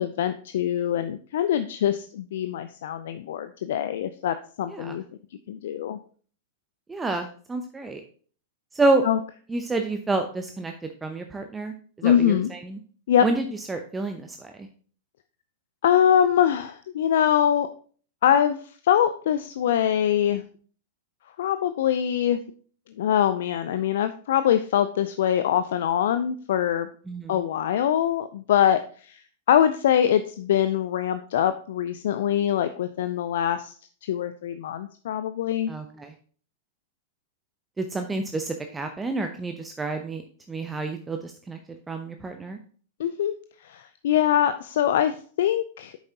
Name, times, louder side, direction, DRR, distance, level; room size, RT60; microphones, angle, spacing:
voice 1, 0.0-5.0 5.5-6.0 9.0-9.2 12.0-12.5 13.1-13.3 15.8-17.7 18.2-20.4 21.4-22.4 23.0-26.9 27.3-33.7 34.0-35.7 43.0-43.4 43.6-46.0, left 10 dB, 60° left, 11 dB, 0.5 m, -23 dB
voice 2, 6.9-8.0 8.7-9.0 9.5-10.7 11.0-12.8 13.2-14.5 27.1-27.3 35.7-36.1 37.8-40.2 40.5-41.6 41.9-42.6, right 2 dB, 15° right, 5 dB, 0.7 m, -28 dB
8.8 x 7.2 x 2.8 m, 0.44 s
figure-of-eight pair, 95°, 0 cm